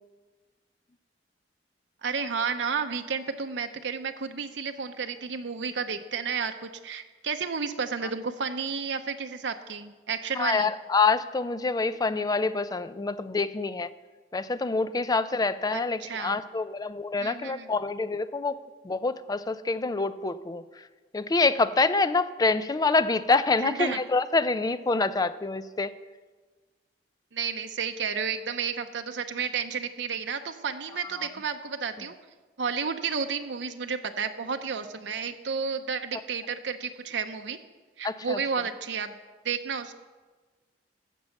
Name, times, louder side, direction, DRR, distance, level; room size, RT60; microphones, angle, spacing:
voice 1, 2.0-10.7 15.7-16.4 17.2-17.7 23.6-24.0 27.3-32.1 32.6-37.6 38.0-39.2 39.4-39.9, right 6 dB, 85° right, 7 dB, 0.7 m, -32 dB
voice 2, 10.4-13.9 14.3-18.5 18.8-20.6 21.1-25.9 31.2-31.3 38.0-38.4, left 3 dB, 20° left, 13 dB, 0.4 m, -26 dB
14.5 x 5.5 x 7.0 m, 1.4 s
head